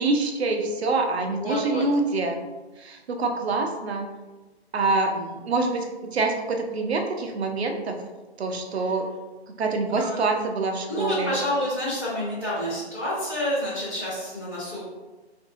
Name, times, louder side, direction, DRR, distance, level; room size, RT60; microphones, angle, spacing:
voice 1, 0.0-2.4 2.8-4.1 4.7-5.1 5.4-7.9 8.4-9.1 9.6-11.3, right 3 dB, 70° right, 3 dB, 0.6 m, -25 dB
voice 2, 1.4-1.8 5.1-5.4 8.8-8.9 9.9-10.2 10.9-14.8, left 1 dB, 5° right, -16 dB, 0.5 m, -29 dB
2.6 x 2.6 x 3.8 m, 1.2 s
hypercardioid pair, 160°, 33 cm